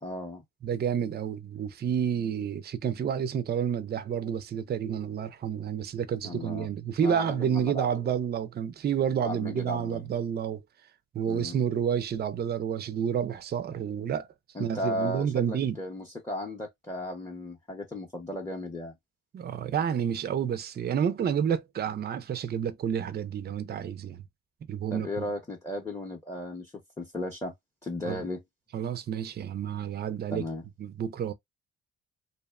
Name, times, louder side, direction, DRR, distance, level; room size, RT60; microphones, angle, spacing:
voice 1, 0.0-0.4 6.2-6.7 7.0-8.1 9.2-10.1 11.3-11.6 14.5-18.9 24.9-27.5 27.8-28.4 30.3-30.6, left 1 dB, 10° left, 0.7 m, -35 dB
voice 2, 0.6-10.6 11.1-14.3 14.6-15.8 19.3-24.2 24.7-25.3 28.1-28.2 28.7-30.4 30.8-31.3, right 8 dB, 35° right, 0.4 m, -29 dB
2.6 x 2.1 x 2.3 m
cardioid pair, 90°, 30 cm